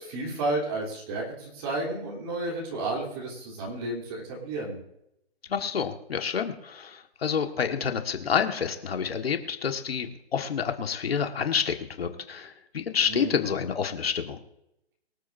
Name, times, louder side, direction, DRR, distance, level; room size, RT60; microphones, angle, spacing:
voice 1, 0.1-4.8 13.1-13.4, right 2 dB, 25° right, -3 dB, 3.2 m, -32 dB
voice 2, 5.5-14.4, left 7 dB, 70° left, 5 dB, 1.6 m, -28 dB
24.0 x 8.4 x 2.6 m, 0.82 s
hypercardioid pair, 170°, 32 cm